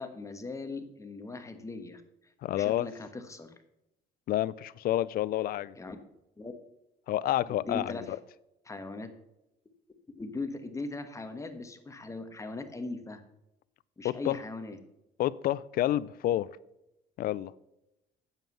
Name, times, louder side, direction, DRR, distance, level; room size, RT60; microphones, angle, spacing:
voice 1, 0.0-2.0 2.5-3.5 5.8-6.0 6.4-6.5 7.5-8.2 8.6-9.1 10.2-13.2 14.0-14.8, left 3 dB, 20° left, 7 dB, 1.3 m, -39 dB
voice 2, 2.4-2.9 4.3-5.7 7.1-8.2 14.0-14.4 15.2-16.5 17.2-17.5, left 13 dB, 60° left, 20 dB, 0.5 m, -29 dB
9.1 x 7.4 x 5.6 m, 0.89 s
cardioid pair, 110°, 17 cm